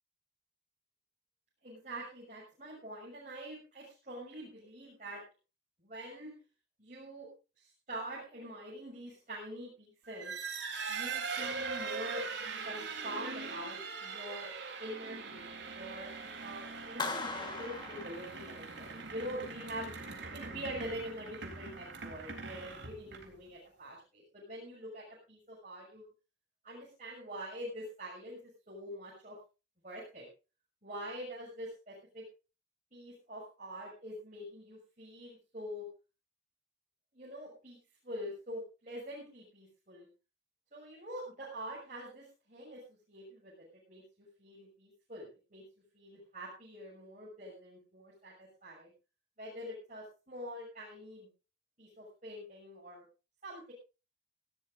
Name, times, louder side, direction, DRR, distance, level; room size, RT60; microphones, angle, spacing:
voice 1, 1.6-5.2 5.8-6.4 6.8-7.3 7.6-10.3 10.9-12.2 12.6-14.5 14.8-26.0 26.6-29.4 29.8-30.3 30.8-32.3 32.9-35.9 37.1-37.8 38.0-40.1 40.7-45.6 45.9-48.9 49.4-51.3 51.8-53.0 53.4-53.7, equal, 40° right, -6 dB, 6.5 m, -45 dB
sound 1, 10.1-23.5, right 4 dB, 70° right, 3.6 m, -41 dB
Clapping, 17.0-18.9, left 3 dB, 25° left, 1.5 m, -40 dB
19.0 x 16.5 x 2.6 m, 0.32 s
head